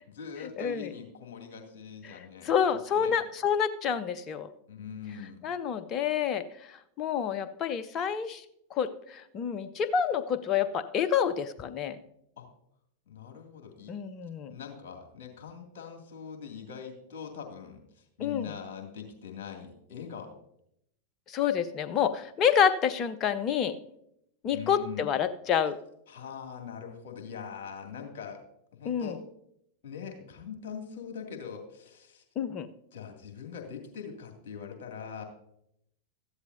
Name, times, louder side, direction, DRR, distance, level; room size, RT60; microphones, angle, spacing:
voice 1, 0.1-2.5 2.9-3.2 4.7-5.4 12.4-12.5 13.1-13.9 14.5-20.3 24.5-25.1 26.1-28.4 28.7-29.2 29.8-32.2 32.9-35.2, left 7 dB, 50° left, 2 dB, 2.4 m, -42 dB
voice 2, 0.6-0.9 2.1-2.2 2.4-4.5 5.4-8.4 8.7-12.0 13.9-14.5 18.2-18.5 21.3-23.7 24.4-25.8 28.8-29.1 32.4-32.7, left 8 dB, 30° left, 13 dB, 0.7 m, -28 dB
14.0 x 11.5 x 2.7 m, 0.76 s
figure-of-eight pair, 90°, 0 cm